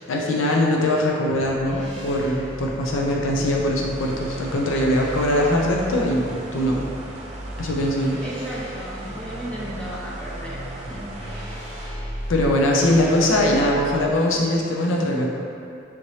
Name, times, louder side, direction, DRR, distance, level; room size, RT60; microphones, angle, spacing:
voice 1, 0.1-6.8 7.6-8.2 12.3-15.3, left 1 dB, 90° left, -1 dB, 0.5 m, -21 dB
sound 1, 1.3-14.1, right 1 dB, 35° left, 1.1 m, -36 dB
sound 2, 3.8-11.9, right 1 dB, 35° right, 0.5 m, -40 dB
voice 2, 8.2-11.4, equal, 5° left, -7 dB, 0.6 m, -35 dB
5.7 x 2.7 x 3.1 m, 2.6 s
head